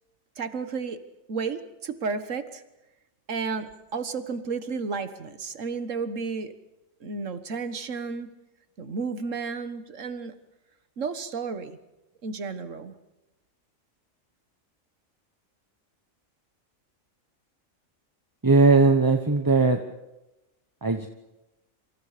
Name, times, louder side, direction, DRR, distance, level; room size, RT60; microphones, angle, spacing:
voice 1, 0.4-1.0 1.3-2.6 3.3-6.5 7.0-8.3 8.8-10.3 11.0-11.8 12.2-12.9, right 5 dB, 70° right, 10 dB, 1.8 m, -32 dB
voice 2, 18.4-19.8 20.8-21.1, right 3 dB, 15° right, 6 dB, 1.0 m, -19 dB
28.0 x 26.5 x 5.1 m, 0.98 s
omnidirectional pair, 1.4 m